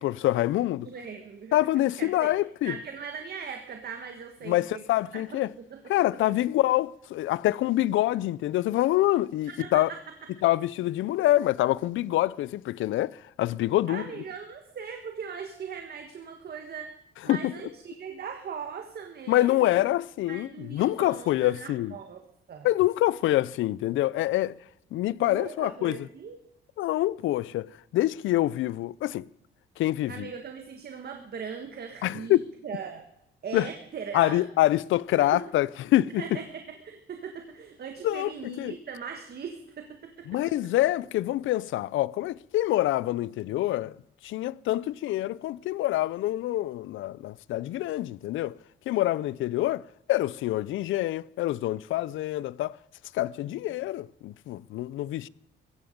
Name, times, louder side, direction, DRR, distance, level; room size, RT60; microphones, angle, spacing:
voice 1, 0.0-0.9 1.5-2.8 4.4-5.5 5.9-9.9 10.4-14.0 17.3-17.5 19.3-21.9 22.6-24.6 24.9-26.0 26.8-29.3 29.8-30.3 32.0-32.4 33.5-33.7 34.1-36.2 38.0-38.7 40.3-44.0 44.2-48.5 48.9-49.8 50.1-52.8 53.1-55.3, left 15 dB, 80° left, 0.5 m, -26 dB
voice 2, 0.8-1.7 2.0-2.3 2.6-4.8 5.1-5.4 5.7-5.8 9.5-10.0 13.9-16.9 17.2-19.8 20.3-22.2 22.5-22.7 25.2-26.4 30.1-32.4 32.6-33.0 33.4-34.4 35.2-35.4 36.2-40.5 53.4-53.5, right 6 dB, 55° right, 1.6 m, -39 dB
15.5 x 15.5 x 5.2 m
cardioid pair, 90°, 20 cm